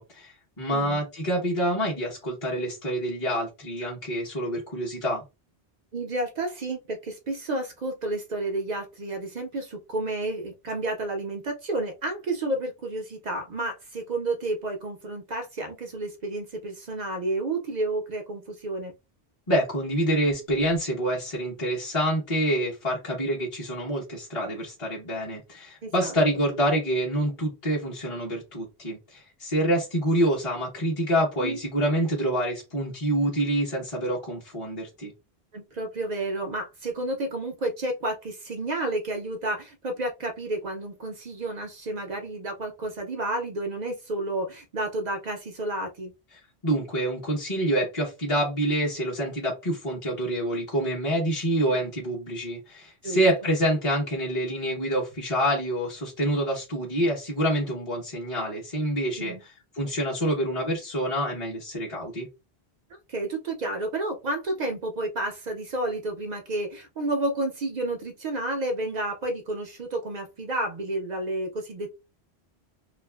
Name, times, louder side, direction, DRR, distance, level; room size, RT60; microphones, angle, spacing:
voice 1, 0.0-5.2 19.5-35.1 46.6-62.3, right 1 dB, 35° left, -4 dB, 0.8 m, -27 dB
voice 2, 0.7-1.0 5.9-18.9 25.8-26.1 31.4-31.6 35.5-46.1 53.0-53.2 59.1-59.4 63.1-71.9, right 2 dB, 55° right, 4 dB, 0.5 m, -31 dB
2.5 x 2.4 x 2.2 m, 0.25 s
omnidirectional pair, 1.1 m